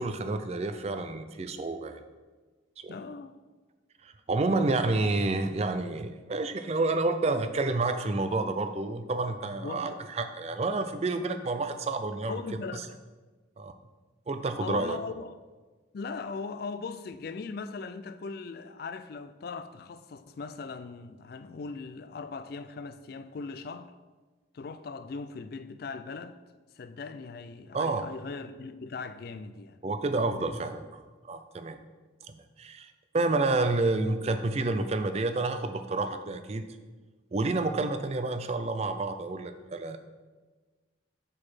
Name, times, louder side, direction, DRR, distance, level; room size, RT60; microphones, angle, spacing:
voice 1, 0.0-2.0 2.8-2.9 4.0-12.4 13.6-13.7 14.3-15.0 27.7-28.0 29.8-31.8 32.3-36.6 37.3-40.0, right 3 dB, 35° right, 0.4 m, -29 dB
voice 2, 2.9-3.3 9.6-10.0 12.3-13.0 14.6-15.4 15.9-23.9 24.5-26.4 26.7-29.8, left 4 dB, 50° left, 0.3 m, -39 dB
6.4 x 4.8 x 4.2 m
head